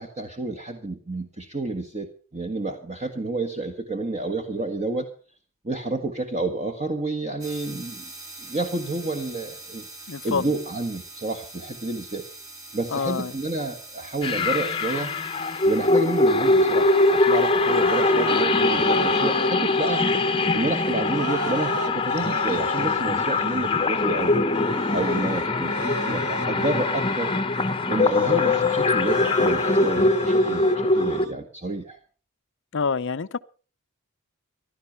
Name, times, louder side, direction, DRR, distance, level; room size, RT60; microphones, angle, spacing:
voice 1, 0.0-5.1 5.6-8.1 8.4-9.9 10.2-12.2 12.7-15.1 15.6-20.0 20.5-24.5 24.9-25.7 26.0-27.3 27.9-32.0, right 2 dB, 30° right, 1.4 m, -29 dB
sound 1, 7.4-18.7, right 2 dB, 15° right, 3.1 m, -44 dB
voice 2, 10.1-10.5 12.9-13.3 32.7-33.4, left 5 dB, 55° left, 0.6 m, -26 dB
sound 2, 14.2-31.3, left 3 dB, 25° left, 0.9 m, -22 dB
sound 3, 16.8-27.4 27.9-31.3, right 5 dB, 90° right, 0.9 m, -37 dB
15.5 x 12.0 x 5.7 m
head